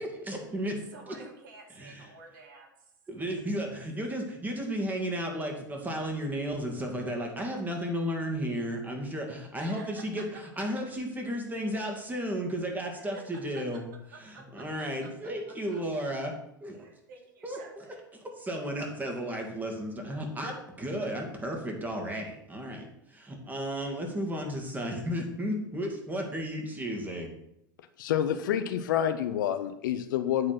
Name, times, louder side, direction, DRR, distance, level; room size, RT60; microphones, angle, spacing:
voice 1, 0.0-0.8 1.1-1.2 1.7-2.1 3.1-13.8 14.2-16.3 16.6-16.9 17.4-17.9 18.4-27.3, equal, 15° right, 2 dB, 2.2 m, -34 dB
voice 2, 0.9-2.7 3.6-3.7 9.5-10.0 12.8-13.2 14.1-15.3 15.7-15.8 16.8-18.0, right 4 dB, 65° right, 2 dB, 1.9 m, -51 dB
voice 3, 28.0-30.5, left 10 dB, 65° left, 10 dB, 0.7 m, -28 dB
8.7 x 4.2 x 6.0 m, 0.80 s
figure-of-eight pair, 85°, 11 cm